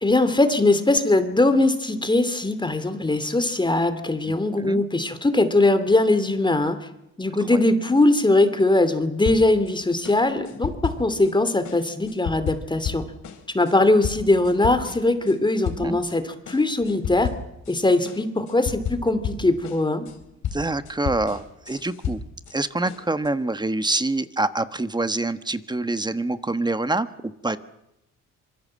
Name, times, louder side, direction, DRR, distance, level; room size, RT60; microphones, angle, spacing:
voice 1, 0.0-6.8 7.2-13.0 13.5-17.3 17.7-20.1, left 2 dB, 15° left, 10 dB, 2.7 m, -21 dB
voice 2, 4.3-4.8 7.5-7.6 15.8-16.0 20.5-22.2 22.5-27.6, right 2 dB, 15° right, 12 dB, 1.3 m, -26 dB
sound 1, 9.2-9.7 10.0-11.3 11.6-15.4 15.6-16.2 16.5-17.8 18.1-22.6 22.9-23.3, left 8 dB, 75° left, 3.9 m, -33 dB
26.0 x 23.5 x 7.6 m, 0.88 s
cardioid pair, 90°, 30 cm